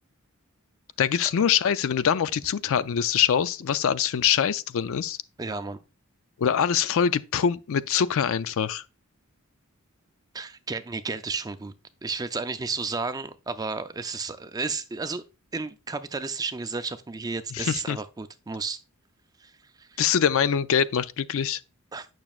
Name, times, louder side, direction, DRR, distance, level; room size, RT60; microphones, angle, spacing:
voice 1, 1.0-5.2 6.4-8.8 17.5-18.0 20.0-21.6, left 8 dB, 65° left, 0.4 m, -24 dB
voice 2, 5.4-5.8 10.3-11.7 12.0-15.2 15.5-18.8 19.4-19.5 19.8-20.0 21.9-22.1, right 4 dB, 15° right, 0.4 m, -32 dB
8.9 x 6.0 x 2.4 m
head